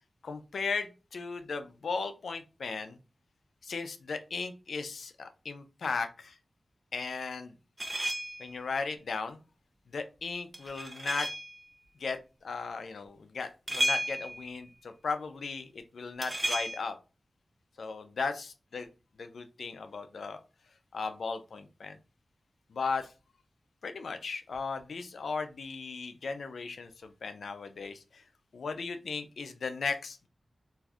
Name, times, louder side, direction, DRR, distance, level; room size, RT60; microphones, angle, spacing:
voice 1, 0.2-3.0 3.6-6.4 6.9-7.6 8.4-9.4 9.9-11.3 12.0-17.0 17.8-18.9 19.2-20.4 20.9-22.0 22.7-23.1 23.8-28.2 28.5-30.3, left 4 dB, 85° left, 8 dB, 0.4 m, -36 dB
sound 1, 7.8-8.5 10.5-11.6 13.7-14.5 16.2-16.8, right 1 dB, 25° right, 0.6 m, -33 dB
2.6 x 2.3 x 3.3 m, 0.31 s
cardioid pair, 60°, 0 cm